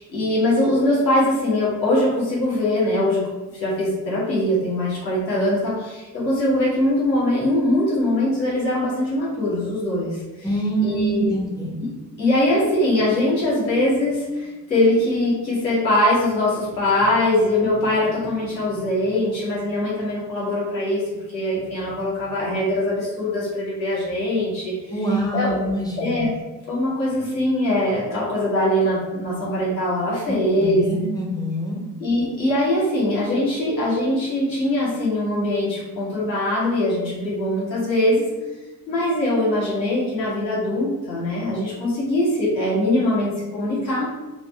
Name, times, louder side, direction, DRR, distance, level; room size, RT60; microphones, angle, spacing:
voice 1, 0.0-3.2 3.5-10.5 10.8-11.3 11.8-11.9 12.2-21.0 21.3-24.7 25.3-25.6 26.0-26.3 26.7-30.8 32.0-38.3 38.9-44.1, left 1 dB, 90° left, -7 dB, 1.2 m, -22 dB
voice 2, 10.4-11.8 24.9-26.2 30.3-31.8, right 1 dB, 10° left, -2 dB, 0.8 m, -25 dB
4.0 x 2.5 x 3.2 m, 1.1 s
figure-of-eight pair, 50°, 50 cm